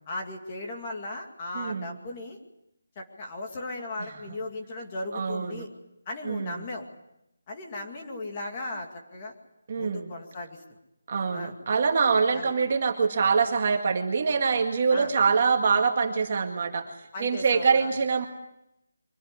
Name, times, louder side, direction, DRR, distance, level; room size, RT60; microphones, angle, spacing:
voice 1, 0.1-2.4 3.0-5.7 6.1-6.9 7.5-9.3 9.8-10.6 11.3-11.5 12.3-12.5 14.9-15.1 17.1-17.9, left 2 dB, 15° left, 1 dB, 2.3 m, -37 dB
voice 2, 1.5-1.9 4.1-4.2 5.1-5.7 6.2-6.7 9.7-10.1 11.1-16.8 17.2-18.3, right 5 dB, 25° right, 3 dB, 2.1 m, -24 dB
24.5 x 17.0 x 9.8 m, 0.81 s
figure-of-eight pair, 180°, 0 cm